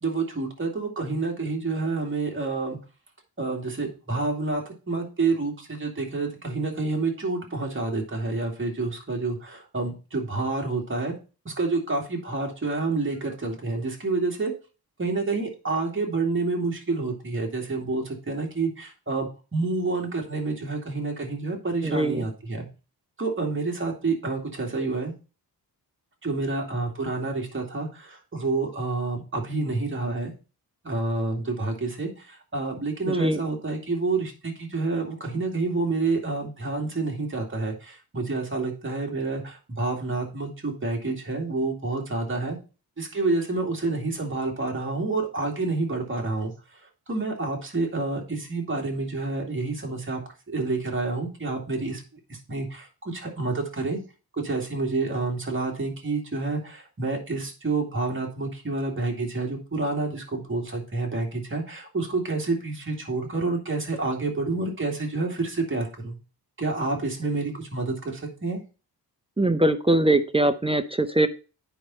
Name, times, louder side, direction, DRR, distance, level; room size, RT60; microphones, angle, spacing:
voice 1, 0.0-2.8 3.4-11.1 11.4-14.5 15.0-22.7 23.2-25.1 26.2-30.3 30.8-42.6 43.0-46.5 47.1-50.2 50.5-52.0 52.5-54.0 54.3-66.2 66.6-68.6, right 3 dB, 30° right, 0 dB, 2.6 m, -28 dB
voice 2, 21.8-22.2 33.1-33.4 69.4-71.3, right 1 dB, 15° right, 10 dB, 0.5 m, -22 dB
9.2 x 5.4 x 4.3 m, 0.33 s
wide cardioid pair, 115°, 39 cm